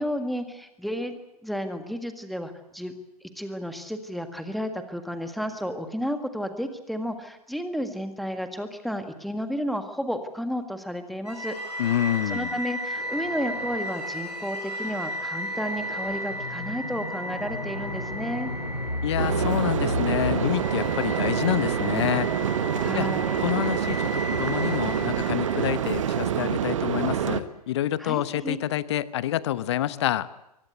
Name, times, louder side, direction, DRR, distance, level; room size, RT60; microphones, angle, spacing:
voice 1, 0.0-2.9 3.4-11.6 12.3-18.5 22.8-23.4 28.0-28.6, equal, ahead, 8 dB, 1.8 m, -32 dB
sound 1, 11.2-26.4, equal, 85° left, 7.6 m, -33 dB
voice 2, 11.8-12.5 19.0-22.3 22.9-23.1 23.4-30.3, left 12 dB, 45° left, 17 dB, 1.0 m, -27 dB
sound 2, 19.2-27.4, right 9 dB, 50° right, 1.3 m, -27 dB
24.0 x 19.0 x 7.9 m, 0.86 s
figure-of-eight pair, 110°, 20 cm